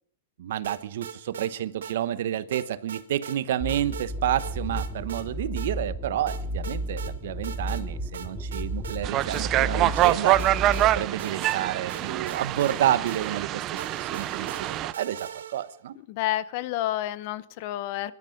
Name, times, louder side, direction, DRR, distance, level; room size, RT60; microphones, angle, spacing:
voice 1, 0.4-10.4 10.9-15.9, right 11 dB, 70° right, 14 dB, 1.1 m, -30 dB
sound 1, 0.6-1.5 1.8-2.0 2.5-3.4 3.7-4.1 4.4-5.3 5.6-5.7 6.3-7.1 7.4-7.8 8.1-9.7 10.0-15.8, right 8 dB, 85° right, 1.8 m, -41 dB
sound 2, 3.6-11.0, right 1 dB, 10° right, 2.3 m, -33 dB
sound 3, 9.0-14.9, right 14 dB, 30° right, 0.6 m, -25 dB
voice 2, 16.1-18.1, left 14 dB, 50° left, 17 dB, 0.9 m, -29 dB
22.0 x 12.5 x 5.3 m, 0.63 s
hypercardioid pair, 140°, 0 cm